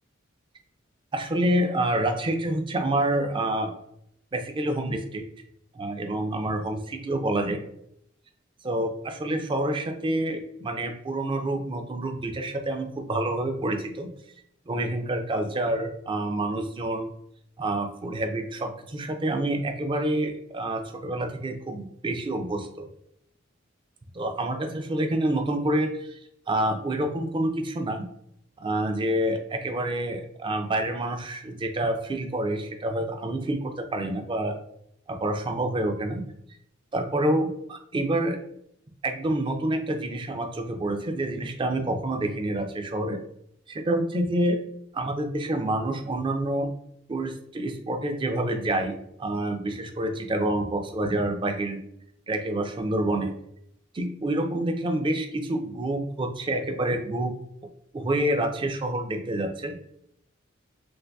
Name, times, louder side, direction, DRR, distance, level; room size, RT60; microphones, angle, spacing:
voice 1, 1.1-3.7 4.3-5.2 5.7-7.6 8.6-14.1 14.7-17.1 17.6-22.9 24.1-26.2 26.5-28.1 28.6-34.6 35.1-36.2 36.9-38.4 39.0-43.2 43.7-44.6 44.9-46.7 47.1-48.9 49.2-51.8 52.3-53.3 53.9-57.3 57.9-59.8, right 1 dB, 25° right, 5 dB, 0.4 m, -27 dB
2.6 x 2.5 x 3.3 m, 0.72 s
head